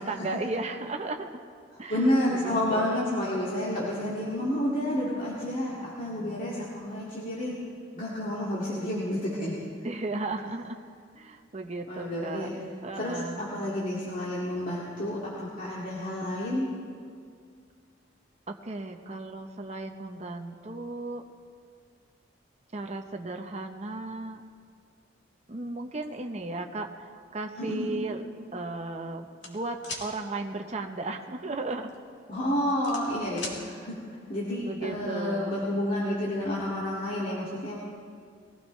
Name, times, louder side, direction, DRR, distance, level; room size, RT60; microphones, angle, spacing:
voice 1, 0.0-1.4 1.8-3.0 9.8-10.8 11.1-12.6 12.8-13.4 18.5-21.2 22.7-24.4 25.5-28.2 28.5-31.9 34.7-35.5, right 2 dB, 35° right, 4 dB, 0.7 m, -35 dB
voice 2, 1.9-7.6 8.0-9.7 11.9-12.5 12.9-16.7 27.6-28.0 32.3-34.0 34.3-37.8, left 1 dB, 45° left, -7 dB, 2.1 m, -30 dB
sound 1, 29.4-30.1 31.7-31.9 32.4-33.6, left 3 dB, 70° left, 2.2 m, -38 dB
21.5 x 15.5 x 3.1 m, 2.2 s
head